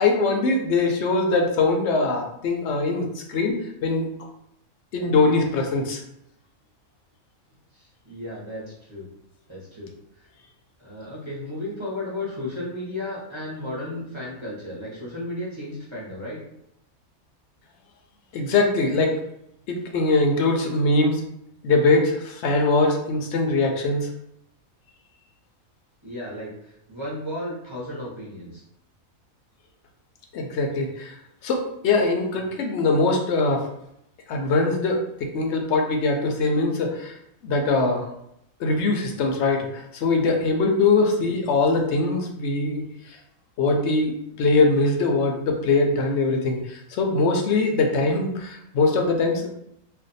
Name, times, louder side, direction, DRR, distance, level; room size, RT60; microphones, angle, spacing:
voice 1, 0.0-4.1 4.9-6.0 18.3-19.2 19.7-21.2 21.6-24.1 30.3-31.2 31.4-33.6 34.3-35.0 35.3-37.2 37.4-38.1 38.6-42.8 43.1-43.2 43.6-49.6, left 3 dB, 65° left, 2 dB, 0.8 m, -22 dB
voice 2, 7.7-9.1 9.5-9.9 10.2-10.3 10.8-16.4 26.0-28.6, left 1 dB, 25° right, -6 dB, 0.6 m, -34 dB
2.5 x 2.2 x 3.9 m, 0.77 s
omnidirectional pair, 1.5 m